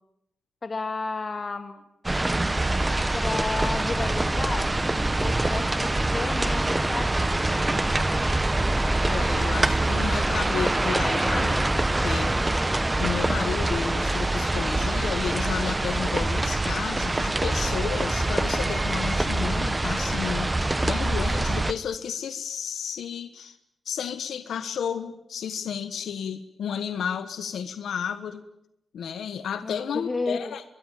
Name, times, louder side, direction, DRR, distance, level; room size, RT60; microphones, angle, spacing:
voice 1, 0.6-1.8 3.1-7.9 29.6-30.5, left 3 dB, 35° left, 8 dB, 2.8 m, -33 dB
sound 1, 2.0-21.7, right 2 dB, 15° right, 1.0 m, -25 dB
voice 2, 9.0-12.3 13.0-20.5 20.8-23.6 23.8-28.4 28.9-30.6, left 7 dB, 90° left, 11 dB, 1.4 m, -32 dB
24.5 x 21.5 x 9.2 m, 0.83 s
wide cardioid pair, 110°, 0 cm